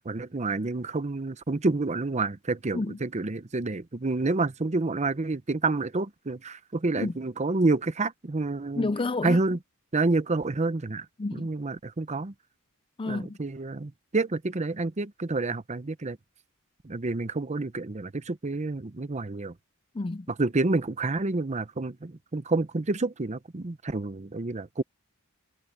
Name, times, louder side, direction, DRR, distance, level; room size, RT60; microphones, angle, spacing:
voice 1, 0.0-8.9 9.2-9.6 9.9-11.1 11.3-12.3 13.1-16.2 16.8-19.5 20.3-24.8, right 3 dB, 30° right, 0.7 m, -28 dB
voice 2, 8.8-9.4 11.2-11.5 13.0-13.4 19.9-20.3, left 3 dB, 25° left, 0.4 m, -30 dB
head